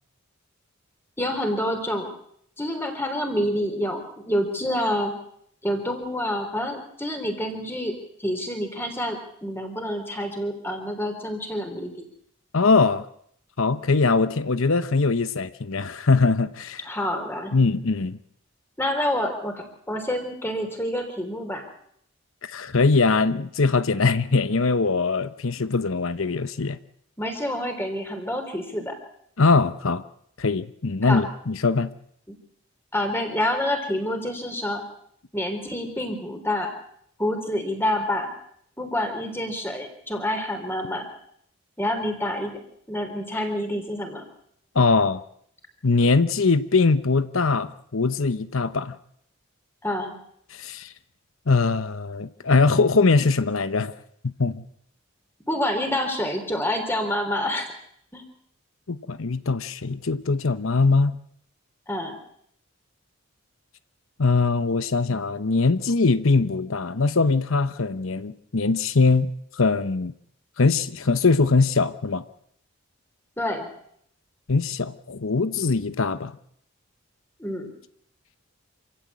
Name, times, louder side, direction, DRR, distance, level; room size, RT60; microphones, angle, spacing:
voice 1, 1.2-2.1 2.6-5.1 5.6-7.9 8.2-12.1 16.9-17.5 18.8-21.6 27.2-29.0 31.0-31.3 32.3-32.4 32.9-34.8 35.3-36.7 37.2-38.3 38.8-41.0 41.8-42.5 42.9-44.2 49.8-50.2 55.5-57.7 58.1-58.2 61.9-62.2 73.4-73.7 77.4-77.7, left 1 dB, 10° left, 3.7 m, -27 dB
voice 2, 12.5-13.1 13.6-16.9 17.5-18.2 22.4-26.8 29.4-30.0 30.4-31.9 44.7-45.2 45.8-49.0 50.5-50.9 51.5-53.9 54.2-54.6 58.9-61.2 64.2-70.1 70.6-72.2 74.5-76.3, left 4 dB, 70° left, 0.9 m, -22 dB
26.5 x 15.5 x 8.5 m
head